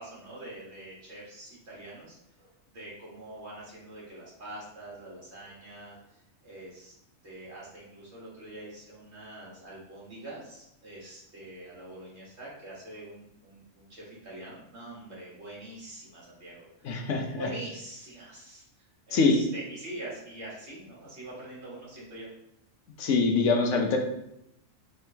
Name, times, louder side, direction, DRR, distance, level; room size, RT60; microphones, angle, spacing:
voice 1, 0.0-6.0 6.4-6.9 7.2-22.3, right 1 dB, 55° right, -5 dB, 2.1 m, -44 dB
voice 2, 16.8-17.5 19.1-19.5 23.0-24.0, left 3 dB, 70° left, 3 dB, 1.1 m, -24 dB
4.4 x 3.5 x 3.4 m, 0.80 s
omnidirectional pair, 1.4 m